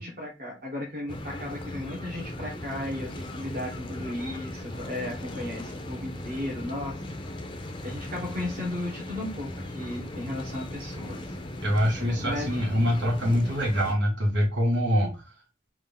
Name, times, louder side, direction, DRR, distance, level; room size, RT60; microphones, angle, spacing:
voice 1, 0.0-7.0 7.8-11.2 12.0-12.6, left 1 dB, 50° right, -3 dB, 1.2 m, -35 dB
sound 1, 1.1-14.0, left 1 dB, 25° left, 0.5 m, -38 dB
voice 2, 11.6-15.2, equal, 70° right, -1 dB, 1.4 m, -24 dB
3.6 x 2.4 x 3.4 m, 0.28 s
head